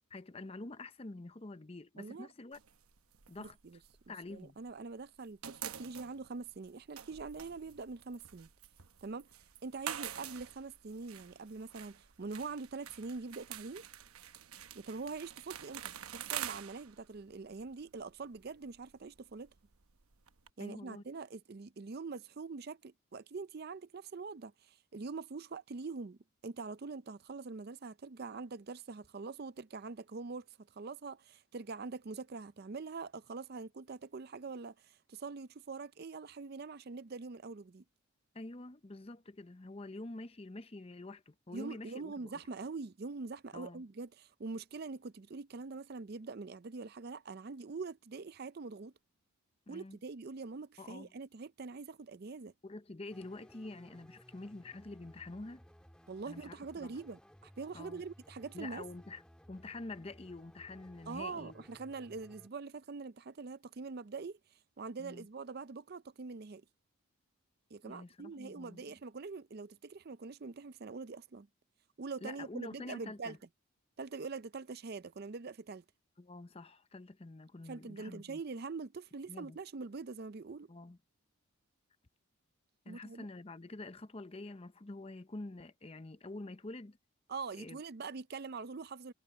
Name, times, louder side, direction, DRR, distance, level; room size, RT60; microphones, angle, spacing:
voice 1, 0.0-2.6 3.3-3.6 4.1-4.6 20.6-21.0 38.3-42.4 43.5-43.8 49.7-50.0 50.8-51.1 52.6-55.6 56.3-57.0 57.7-58.0 58.5-59.2 59.5-61.6 65.0-65.3 67.8-68.8 72.2-73.4 76.2-78.4 79.3-79.6 80.7-81.0 82.9-87.0 87.6-87.8, left 2 dB, 25° left, 0.6 m, -47 dB
voice 2, 2.0-2.3 3.4-3.8 4.3-8.5 9.0-9.3 9.6-13.8 14.7-19.5 20.6-30.5 30.7-37.8 41.5-48.9 49.7-52.5 56.1-58.9 61.1-64.4 64.8-66.6 67.7-71.5 72.0-73.4 74.0-75.8 77.7-80.7 82.9-83.3 87.3-89.1, right 4 dB, 45° right, 0.5 m, -44 dB
sound 1, 2.5-4.8 5.0-20.5, right 10 dB, 80° right, 1.0 m, -47 dB
sound 2, 53.1-62.5, equal, 5° left, 2.2 m, -59 dB
head